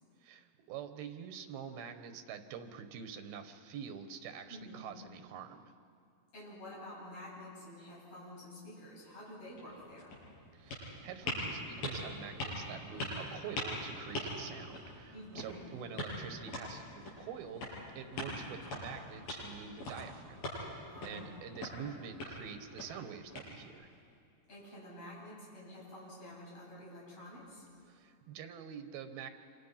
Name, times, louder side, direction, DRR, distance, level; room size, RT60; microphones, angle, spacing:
voice 1, 0.2-5.7 10.5-23.9 27.9-29.3, right 7 dB, 85° right, 8 dB, 3.1 m, -46 dB
voice 2, 4.5-4.9 6.3-10.2 15.1-15.6 20.9-21.4 24.5-27.6, left 1 dB, 40° left, -6 dB, 9.0 m, -49 dB
sound 1, 9.5-23.9, left 1 dB, 80° left, 8.8 m, -43 dB
27.0 x 26.5 x 5.8 m, 2.4 s
omnidirectional pair, 4.2 m